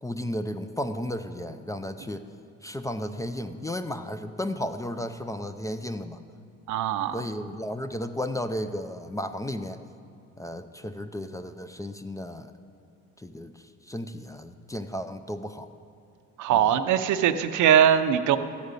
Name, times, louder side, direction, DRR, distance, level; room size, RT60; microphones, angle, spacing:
voice 1, 0.0-2.2 2.6-6.2 7.1-9.8 10.4-12.5 13.2-15.7 16.5-16.7, left 1 dB, 10° left, 9 dB, 0.4 m, -34 dB
voice 2, 6.7-7.3 16.4-18.4, right 9 dB, 75° right, 10 dB, 0.6 m, -21 dB
13.0 x 5.2 x 8.2 m, 2.5 s
cardioid pair, 90°, 30 cm